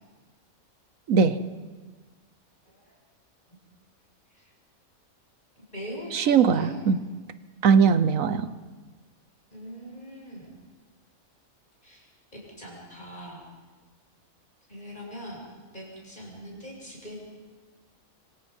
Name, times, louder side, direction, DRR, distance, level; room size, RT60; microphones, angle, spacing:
voice 1, 1.1-1.4 6.1-7.0 7.6-8.5, right 6 dB, 70° right, 13 dB, 1.3 m, -20 dB
voice 2, 5.7-6.8 9.5-10.5 11.8-12.1 12.3-13.4 14.7-15.4 15.7-17.2, equal, 35° left, -2 dB, 7.6 m, -41 dB
26.0 x 26.0 x 5.5 m, 1.4 s
omnidirectional pair, 1.5 m